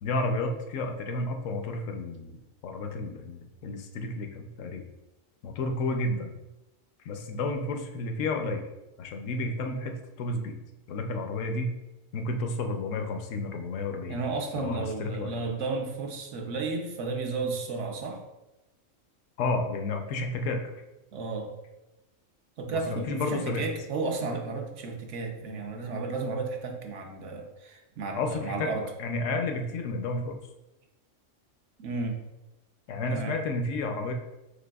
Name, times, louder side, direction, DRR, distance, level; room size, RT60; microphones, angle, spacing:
voice 1, 0.0-2.4 2.6-4.9 5.4-6.4 7.0-8.6 9.0-10.6 10.9-11.7 12.1-14.2 14.5-15.4 19.4-20.6 22.7-23.7 28.1-30.4 32.9-34.1, left 2 dB, 75° left, 5 dB, 0.9 m, -31 dB
voice 2, 14.1-18.2 21.1-21.5 22.6-28.9 31.8-32.2 33.1-33.4, right 3 dB, 70° right, 3 dB, 1.0 m, -33 dB
5.9 x 3.3 x 2.3 m, 1.0 s
omnidirectional pair, 1.4 m